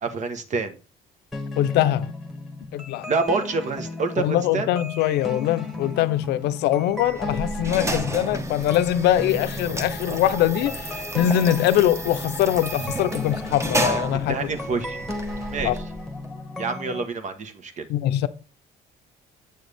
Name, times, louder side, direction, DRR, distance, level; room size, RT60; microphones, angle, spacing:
voice 1, 0.0-0.7 3.1-4.7 14.3-15.0 15.5-15.7 16.6-17.9, right 4 dB, 45° right, 1.2 m, -27 dB
sound 1, 1.3-17.0, left 2 dB, ahead, 1.6 m, -35 dB
voice 2, 1.6-2.1 2.7-3.1 4.2-14.4 15.6-15.8 17.9-18.3, left 12 dB, 80° left, 0.6 m, -22 dB
sound 2, 7.0-16.3, right 1 dB, 15° right, 1.3 m, -32 dB
8.4 x 6.4 x 3.4 m
cardioid pair, 110°, 17 cm